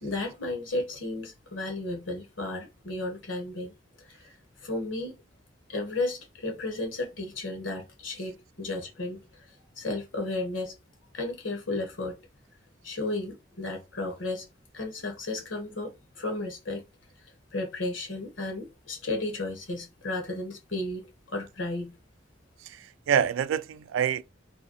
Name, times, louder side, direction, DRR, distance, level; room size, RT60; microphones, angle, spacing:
voice 1, 0.0-3.7 4.6-5.1 5.7-9.2 9.8-10.7 11.1-12.1 12.8-14.4 14.7-16.8 17.5-21.0 21.3-21.9, left 2 dB, 85° left, 1.4 m, -33 dB
voice 2, 22.6-24.2, right 8 dB, 85° right, 0.3 m, -27 dB
3.4 x 2.7 x 4.0 m
head